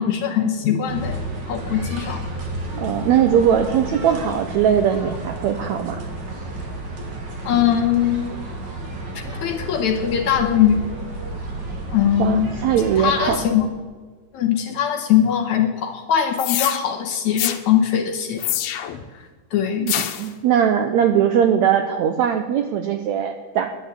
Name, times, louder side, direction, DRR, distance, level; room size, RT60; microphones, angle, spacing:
voice 1, 0.0-2.2 7.5-8.4 9.2-10.9 11.9-12.5 13.0-13.7 14.3-18.4 19.5-19.9, left 9 dB, 65° left, 4 dB, 2.0 m, -21 dB
sound 1, 0.9-13.5, right 1 dB, 35° right, 2.3 m, -31 dB
voice 2, 2.7-6.1 12.2-13.4 19.8-23.7, right 8 dB, 75° right, 7 dB, 1.6 m, -20 dB
sound 2, 16.4-16.8 17.4-17.6 18.4-19.0 19.9-20.3, left 12 dB, 90° left, 2.8 m, -25 dB
11.0 x 10.0 x 8.2 m, 1.4 s
omnidirectional pair, 4.1 m